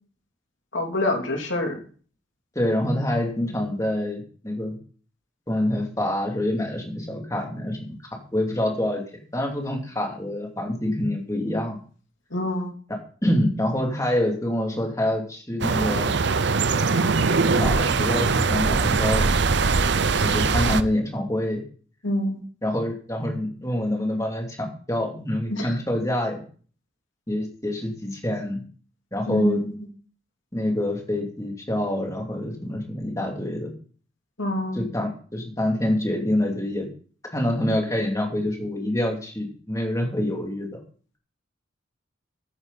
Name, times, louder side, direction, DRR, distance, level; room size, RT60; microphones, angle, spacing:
voice 1, 0.7-1.8 12.3-12.7 22.0-22.4 25.5-25.7 29.3-29.8 34.4-34.8, left 1 dB, 75° left, 1 dB, 3.3 m, -26 dB
voice 2, 2.5-4.8 5.5-7.8 8.3-9.0 9.3-11.8 12.9-16.2 17.5-19.4 20.2-21.6 22.6-26.4 27.3-28.6 29.1-29.6 30.5-33.7 34.7-36.9 37.3-40.8, left 1 dB, 15° left, 1 dB, 2.8 m, -26 dB
sound 1, 15.6-20.8, right 4 dB, 60° right, 0.7 m, -21 dB
14.5 x 9.8 x 4.1 m, 0.42 s
head